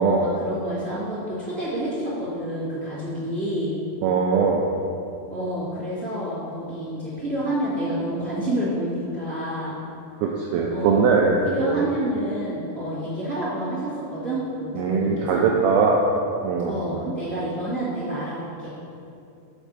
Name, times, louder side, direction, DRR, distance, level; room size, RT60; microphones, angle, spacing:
voice 1, 0.0-3.7 5.3-9.8 10.7-11.0 11.4-15.4 16.6-18.7, right 1 dB, 45° right, -12 dB, 0.9 m, -28 dB
voice 2, 4.0-4.6 10.2-11.9 14.8-16.0 16.4-16.8, right 5 dB, 85° right, -1 dB, 2.2 m, -21 dB
7.1 x 4.4 x 6.6 m, 2.6 s
omnidirectional pair, 4.8 m